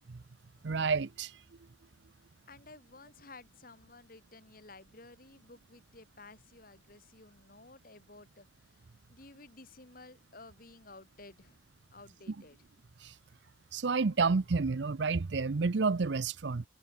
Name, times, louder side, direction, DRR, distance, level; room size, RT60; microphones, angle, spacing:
voice 1, 0.6-1.3 13.0-13.1 13.7-16.6, right 4 dB, 60° right, 0.6 m, -30 dB
voice 2, 2.5-8.8 9.1-11.6 11.9-12.6, left 3 dB, 45° left, 3.0 m, -54 dB
head